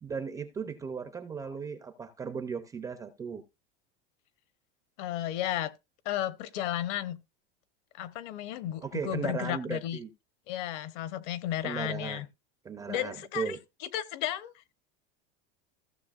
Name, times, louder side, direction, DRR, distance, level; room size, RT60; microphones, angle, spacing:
voice 1, 0.0-3.4 8.8-10.1 11.6-12.2 12.6-13.6, right 6 dB, 10° right, 0.4 m, -36 dB
voice 2, 5.0-5.7 6.0-7.2 7.9-10.0 10.5-12.3 12.9-13.6 13.9-14.6, left 12 dB, 50° left, 0.9 m, -33 dB
15.5 x 6.8 x 2.4 m
supercardioid pair, 170°, 29 cm